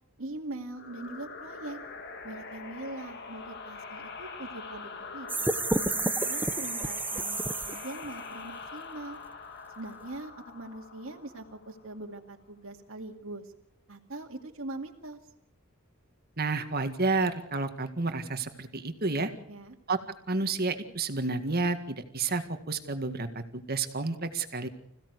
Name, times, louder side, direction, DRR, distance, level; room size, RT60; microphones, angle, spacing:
voice 1, 0.2-1.8 2.2-5.5 5.9-9.2 9.8-13.5 13.9-15.2 19.5-19.8, right 2 dB, 60° right, 1 dB, 2.2 m, -42 dB
sound 1, 0.8-12.1, left 4 dB, 50° left, 2.1 m, -44 dB
sound 2, 5.3-8.1, right 2 dB, 10° right, 0.9 m, -30 dB
voice 2, 16.4-19.3 19.9-20.0 20.3-24.7, right 3 dB, 45° right, 8 dB, 1.9 m, -30 dB
26.0 x 16.0 x 8.2 m, 0.77 s
head